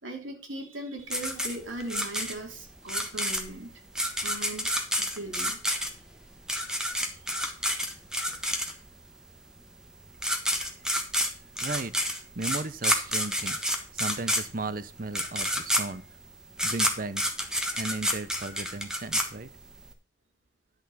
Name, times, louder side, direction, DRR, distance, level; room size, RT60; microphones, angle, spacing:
voice 1, 0.0-3.7 4.2-5.6, right 1 dB, 90° right, 3 dB, 3.0 m, -39 dB
sound 1, 1.1-9.0 9.9-10.0 10.2-19.9, equal, 5° right, 1.3 m, -29 dB
voice 2, 11.6-11.9 12.4-16.0 16.6-17.2 17.8-19.5, right 3 dB, 45° right, 14 dB, 0.7 m, -35 dB
10.5 x 6.8 x 4.1 m, 0.40 s
head